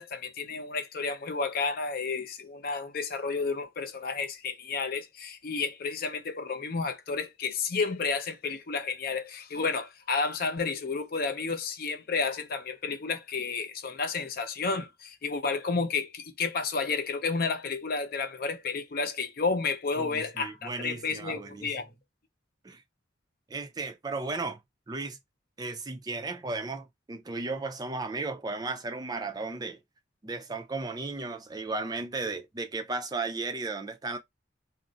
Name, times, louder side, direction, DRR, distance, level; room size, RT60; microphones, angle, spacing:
voice 1, 0.0-21.9, left 4 dB, 50° left, 0.5 m, -31 dB
voice 2, 20.0-21.7 22.6-22.8 23.5-24.6 24.9-25.2 25.6-29.8 30.2-34.2, right 3 dB, 20° right, 0.4 m, -35 dB
2.4 x 2.0 x 3.8 m
head